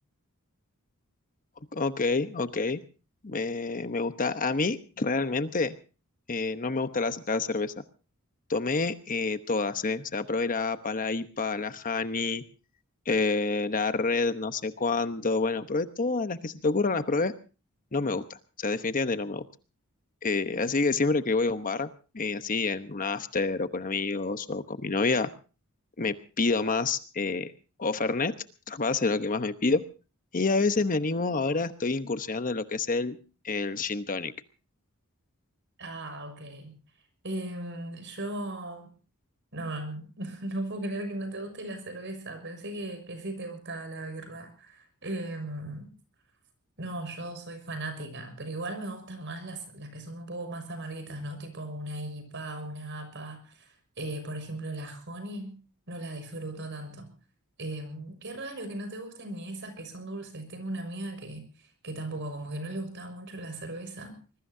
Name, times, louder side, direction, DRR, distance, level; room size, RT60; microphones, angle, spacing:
voice 1, 1.7-2.8 3.2-5.8 6.3-7.7 8.5-12.4 13.1-17.3 17.9-18.3 18.6-19.4 20.2-25.3 26.0-27.5 27.8-28.3 28.7-29.8 30.3-33.2 33.4-34.3, left 3 dB, 40° left, 10 dB, 1.0 m, -28 dB
voice 2, 35.8-36.8 37.2-38.9 39.5-45.9 46.8-55.5 55.9-57.1 57.6-64.2, right 1 dB, 55° right, 8 dB, 6.5 m, -37 dB
24.5 x 21.5 x 2.7 m, 0.36 s
head